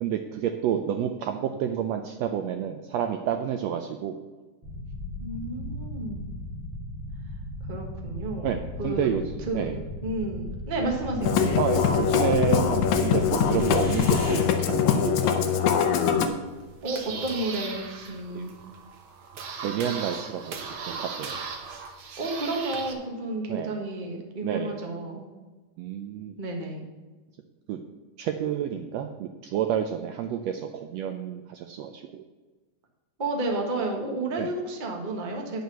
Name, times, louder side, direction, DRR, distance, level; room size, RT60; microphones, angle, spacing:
voice 1, 0.0-4.2 8.4-9.2 9.5-9.8 11.6-15.6 18.3-18.4 19.6-21.4 23.5-23.7 24.4-24.8 25.8-26.3 27.7-27.8 28.2-32.2 34.4-34.5, right 9 dB, 85° right, 6 dB, 1.5 m, -29 dB
sound 1, 4.6-14.4, left 1 dB, 5° right, 2.7 m, -36 dB
voice 2, 5.2-6.3 7.7-9.1 9.5-11.6 16.8-18.5 22.2-25.2 26.4-26.8 33.2-35.6, right 2 dB, 35° right, 1 dB, 0.7 m, -31 dB
Musical instrument, 11.2-16.3, left 8 dB, 75° left, 2.2 m, -23 dB
sound 2, 16.5-22.9, right 5 dB, 60° right, 1.5 m, -38 dB
9.4 x 6.3 x 6.8 m, 1.3 s
omnidirectional pair, 3.6 m